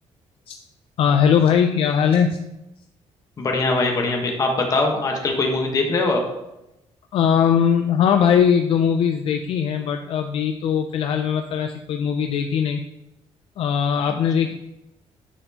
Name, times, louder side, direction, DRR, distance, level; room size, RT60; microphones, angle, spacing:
voice 1, 1.0-2.4 7.1-12.8 13.6-14.5, left 7 dB, 55° left, 5 dB, 0.4 m, -20 dB
voice 2, 3.4-6.2, left 2 dB, 30° left, 1 dB, 1.1 m, -22 dB
9.9 x 4.2 x 2.8 m, 0.91 s
cardioid pair, 170°, 11 cm